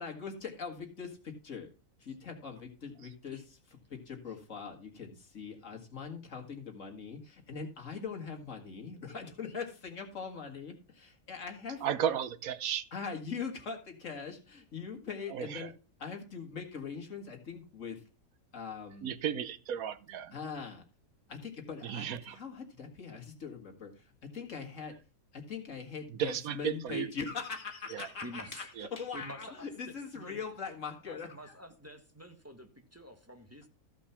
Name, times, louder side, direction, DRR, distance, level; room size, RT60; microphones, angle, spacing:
voice 1, 0.0-1.7 2.0-11.9 12.9-15.7 16.0-18.0 18.5-19.1 20.3-20.8 21.3-24.9 25.3-31.5, left 5 dB, 60° left, 2 dB, 2.2 m, -42 dB
voice 2, 11.8-12.8 15.3-15.7 19.0-20.3 21.8-22.4 26.2-27.1 27.9-28.1 28.8-28.9, right 9 dB, 80° right, 14 dB, 1.2 m, -34 dB
voice 3, 28.2-28.7 29.1-30.4 31.1-33.7, equal, 10° right, 5 dB, 1.5 m, -49 dB
14.5 x 5.3 x 5.7 m, 0.34 s
omnidirectional pair, 1.5 m